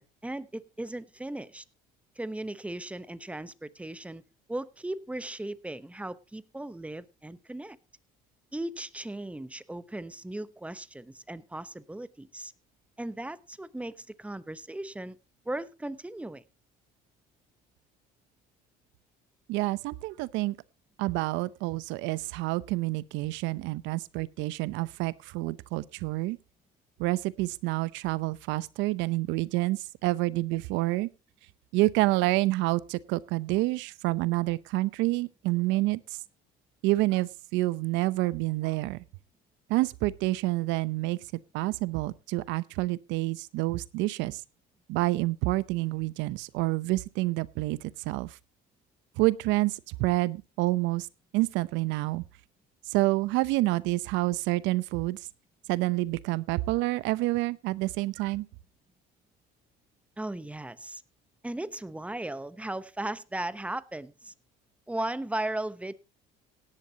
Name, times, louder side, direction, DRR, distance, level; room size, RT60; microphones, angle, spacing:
voice 1, 0.0-1.6 2.2-4.2 4.5-7.8 8.5-12.5 13.0-15.2 15.4-16.4 60.2-61.0 61.4-64.3 64.9-65.9, right 1 dB, 5° right, 1.0 m, -37 dB
voice 2, 19.5-20.5 21.0-26.4 27.0-31.1 31.7-36.0 36.8-39.0 39.7-41.2 41.5-44.4 44.9-48.4 49.2-51.1 51.3-52.2 52.9-55.2 55.7-58.5, right 19 dB, 75° right, 0.8 m, -28 dB
17.5 x 11.0 x 2.9 m
supercardioid pair, 95°, 20 cm